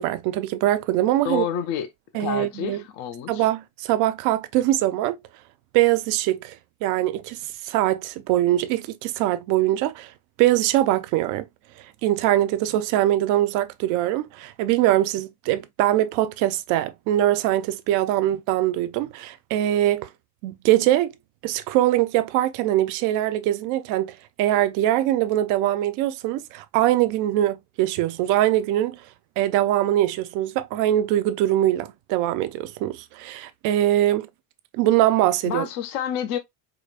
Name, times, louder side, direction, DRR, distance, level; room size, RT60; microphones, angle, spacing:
voice 1, 0.0-1.4 2.1-2.8 3.3-5.2 5.7-7.4 7.6-10.1 10.4-11.4 12.0-20.1 20.4-21.1 21.4-29.0 29.4-34.3 34.7-35.7, right 14 dB, 45° right, 0.4 m, -22 dB
voice 2, 1.2-1.9 2.2-3.5 35.4-36.4, left 9 dB, 40° left, 0.5 m, -29 dB
4.8 x 2.1 x 2.4 m
cardioid pair, 170°, 43 cm